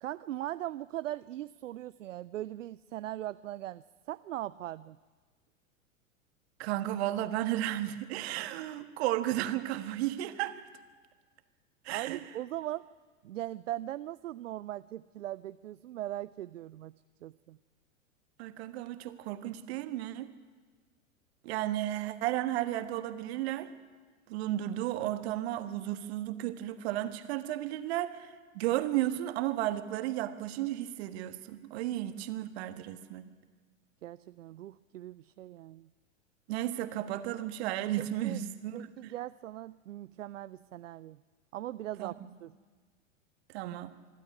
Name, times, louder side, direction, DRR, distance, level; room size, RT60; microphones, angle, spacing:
voice 1, 0.0-5.0 11.9-12.9 13.2-16.9 17.2-17.6 34.0-35.9 38.0-38.4 38.7-41.2 41.5-42.1 42.4-42.5, right 14 dB, 70° right, 16 dB, 0.5 m, -40 dB
voice 2, 6.6-10.6 11.8-12.2 18.4-20.3 21.4-23.7 24.3-33.2 36.5-39.1 42.0-42.3 43.5-43.9, right 13 dB, 50° right, 10 dB, 1.5 m, -33 dB
25.0 x 12.5 x 9.7 m, 1.5 s
figure-of-eight pair, 95°, 40 cm